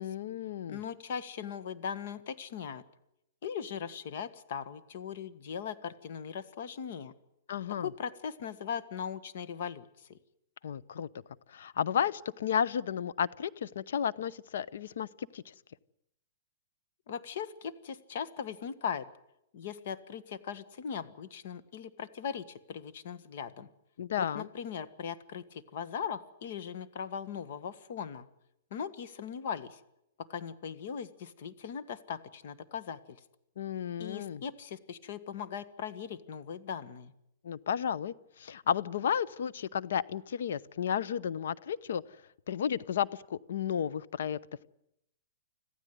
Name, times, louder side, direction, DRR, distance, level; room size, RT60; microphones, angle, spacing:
voice 1, 0.0-0.8 7.5-7.9 10.6-11.1 11.5-15.5 24.0-24.5 33.6-34.4 37.4-42.0 42.5-44.4, left 8 dB, 70° left, 18 dB, 0.8 m, -33 dB
voice 2, 0.7-2.8 3.4-7.1 7.8-10.2 17.1-19.0 19.5-23.7 24.2-28.3 28.7-29.8 30.2-33.2 34.0-37.1, left 7 dB, 55° left, 12 dB, 1.7 m, -39 dB
26.0 x 15.0 x 9.5 m, 0.81 s
hypercardioid pair, 160°, 0 cm